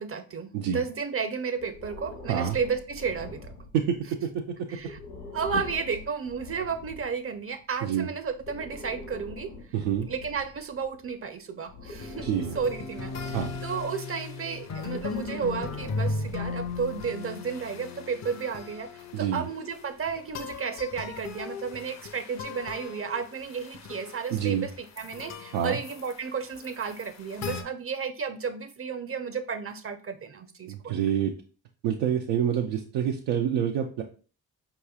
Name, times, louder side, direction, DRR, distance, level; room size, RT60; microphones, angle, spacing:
voice 1, 0.0-3.5 4.7-5.0 5.3-9.5 10.1-12.3 12.5-31.0, right 6 dB, 30° right, 10 dB, 0.5 m, -33 dB
Breathing, 1.6-4.0 4.8-7.1 8.2-11.1 11.7-13.9 14.8-17.1, left 3 dB, 65° left, 1.0 m, -44 dB
voice 2, 3.7-4.7 7.8-8.1 9.7-10.1 12.2-12.6 13.3-13.5 19.1-19.5 24.3-24.7 25.5-25.8 30.7-31.3 31.8-34.0, right 9 dB, 85° right, 1 dB, 0.5 m, -27 dB
sound 1, 12.0-27.6, left 4 dB, 40° left, 0.6 m, -37 dB
4.7 x 3.0 x 2.3 m, 0.38 s
hypercardioid pair, 45°, 44 cm